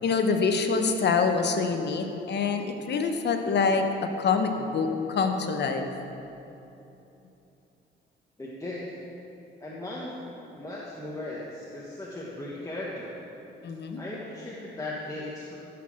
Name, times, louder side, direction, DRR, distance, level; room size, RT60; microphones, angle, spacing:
voice 1, 0.0-3.9 4.2-5.9 13.6-14.0, left 5 dB, 60° left, 5 dB, 1.1 m, -25 dB
voice 2, 8.4-9.0 9.6-10.1 10.5-13.1 14.0-15.6, left 1 dB, 15° left, -5 dB, 1.5 m, -37 dB
13.5 x 6.1 x 6.4 m, 2.9 s
cardioid pair, 90°, 20 cm